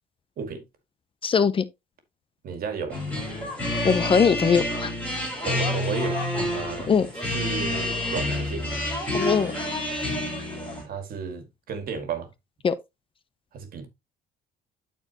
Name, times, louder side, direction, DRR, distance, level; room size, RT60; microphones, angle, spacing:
voice 1, 1.2-1.6 3.8-4.9 6.9-7.1 9.1-9.5 12.6-12.8, left 6 dB, 30° left, 0.7 m, -21 dB
voice 2, 2.4-3.0 5.4-6.2 6.6-6.9 7.3-8.8 10.8-12.3 13.5-13.9, right 6 dB, 60° right, 2.1 m, -33 dB
sound 1, 2.9-10.8, left 1 dB, 10° left, 4.4 m, -28 dB
13.0 x 4.5 x 2.8 m
cardioid pair, 110°, 17 cm